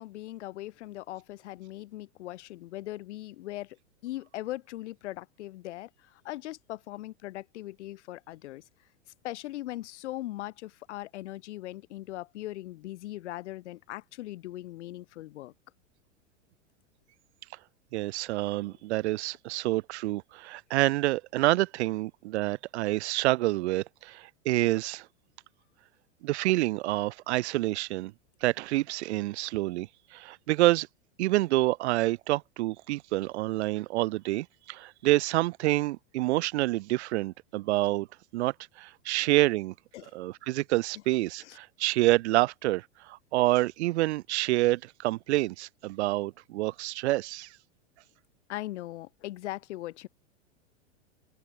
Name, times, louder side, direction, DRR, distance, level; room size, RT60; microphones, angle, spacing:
voice 1, 0.0-3.8 4.0-8.6 9.2-15.5 18.7-18.8 39.9-40.1 41.4-41.6 48.5-50.1, left 16 dB, 65° left, 3.2 m, -40 dB
voice 2, 17.9-25.1 26.2-28.1 28.4-30.9 31.2-38.1 38.3-39.7 40.1-47.5, right 18 dB, 60° right, 1.1 m, -27 dB
open air
hypercardioid pair, 110°, 37 cm